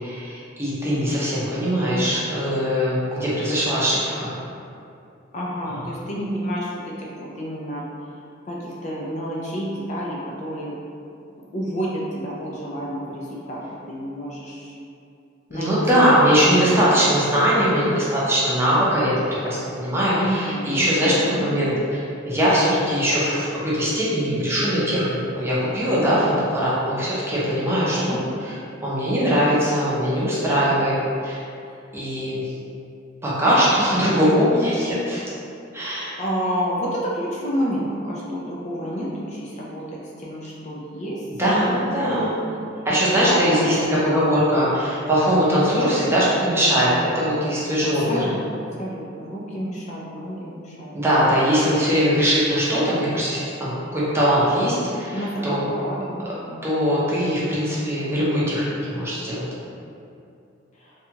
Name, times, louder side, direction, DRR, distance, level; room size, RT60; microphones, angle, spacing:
voice 1, 0.0-4.3 15.5-19.1 19.4-28.5 28.8-30.9 31.2-31.4 31.9-32.4 33.2-35.2 35.7-36.2 41.4-42.3 42.8-43.8 44.0-48.3 50.9-55.7 56.6-59.5, equal, 15° right, -9 dB, 0.6 m, -21 dB
voice 2, 5.3-7.8 8.1-10.8 11.4-14.7 15.5-16.8 20.1-21.4 27.7-28.2 31.7-31.8 36.2-42.3 42.9-43.7 48.1-51.0 55.1-56.6 60.8-60.9, equal, 35° left, -5 dB, 0.3 m, -30 dB
2.7 x 2.2 x 2.7 m, 2.6 s
head